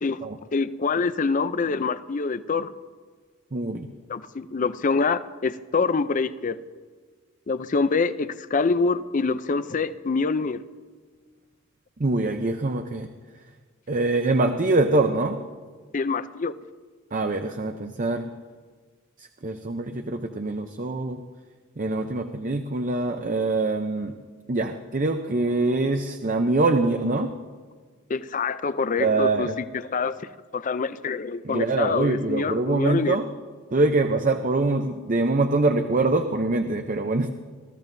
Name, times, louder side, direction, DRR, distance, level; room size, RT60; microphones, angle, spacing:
voice 1, 0.5-2.7 4.1-6.6 7.5-10.6 15.9-16.5 28.1-29.5 29.7-30.2 30.5-33.2, left 4 dB, 40° left, 14 dB, 0.5 m, -25 dB
voice 2, 3.5-3.9 12.0-13.1 13.9-15.4 17.1-18.3 19.2-21.2 21.8-24.1 24.5-27.3 29.0-29.6 31.4-33.2 33.7-37.3, right 2 dB, 40° right, 6 dB, 0.6 m, -24 dB
21.0 x 14.0 x 2.7 m, 1.5 s
head